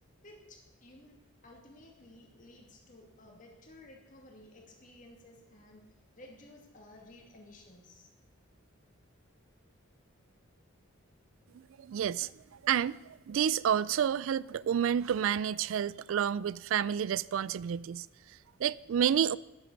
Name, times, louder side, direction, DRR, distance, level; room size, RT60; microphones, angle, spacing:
voice 1, 0.2-1.2 1.4-8.1, left 1 dB, 35° left, 2.5 m, -55 dB
voice 2, 11.5-19.4, right 9 dB, 65° right, 0.3 m, -30 dB
9.7 x 7.8 x 9.4 m
head